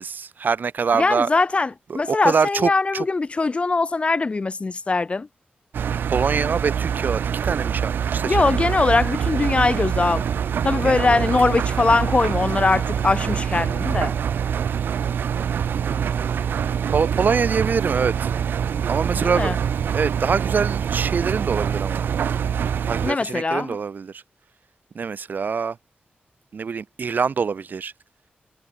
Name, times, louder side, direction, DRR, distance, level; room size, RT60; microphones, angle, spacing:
voice 1, 0.0-1.3 1.9-3.0 6.1-8.7 10.8-11.3 15.9-18.3 18.9-19.5 19.9-22.1 22.8-24.2 24.9-25.8 26.5-27.9, right 5 dB, 65° right, 1.6 m, -25 dB
voice 2, 0.9-5.3 8.3-10.2 10.6-14.1 19.2-19.6 23.0-23.8, left 3 dB, 35° left, 0.5 m, -21 dB
Engine, 5.7-23.1, right 8 dB, 90° right, 0.5 m, -25 dB
cardioid pair, 75°, 3 cm